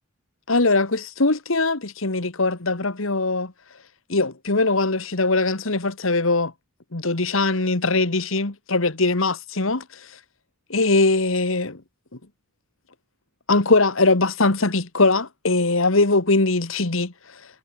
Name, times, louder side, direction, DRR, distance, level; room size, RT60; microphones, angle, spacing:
voice 1, 0.5-3.5 4.1-6.5 6.9-10.2 10.7-11.8 13.5-17.4, left 3 dB, 70° left, 1.9 m, -21 dB
head